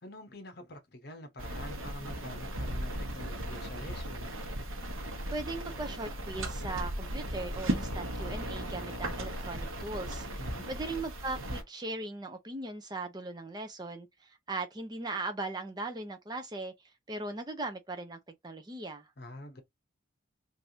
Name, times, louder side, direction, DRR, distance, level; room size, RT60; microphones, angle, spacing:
voice 1, 0.0-4.4 10.4-10.7 19.2-19.6, left 1 dB, 50° left, 0.9 m, -46 dB
sound 1, 1.4-11.6, right 1 dB, 90° right, 1.0 m, -37 dB
voice 2, 5.3-10.3 10.7-16.7 17.1-19.1, right 2 dB, 20° right, 0.5 m, -39 dB
3.4 x 2.6 x 2.7 m
head